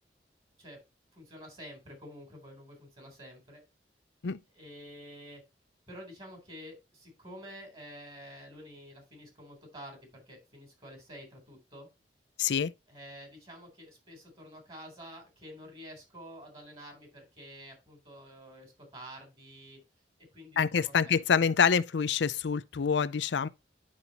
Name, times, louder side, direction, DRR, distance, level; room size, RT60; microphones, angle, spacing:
voice 1, 1.1-3.6 4.5-5.4 5.9-11.9 12.9-19.8 20.3-21.2, equal, 30° right, 3.5 m, -49 dB
voice 2, 12.4-12.7 20.6-23.5, left 6 dB, 80° left, 0.5 m, -26 dB
10.0 x 5.3 x 2.8 m
head